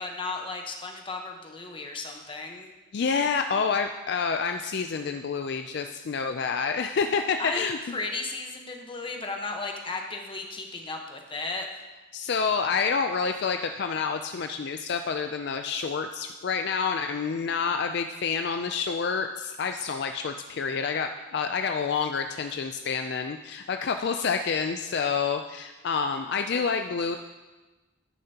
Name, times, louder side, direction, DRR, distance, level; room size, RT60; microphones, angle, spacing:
voice 1, 0.0-2.7 7.4-11.7 26.5-26.6, left 3 dB, 25° left, 2 dB, 1.1 m, -35 dB
voice 2, 2.9-8.0 12.1-27.2, left 5 dB, 60° left, 6 dB, 0.4 m, -28 dB
10.5 x 10.0 x 2.9 m, 1.2 s
head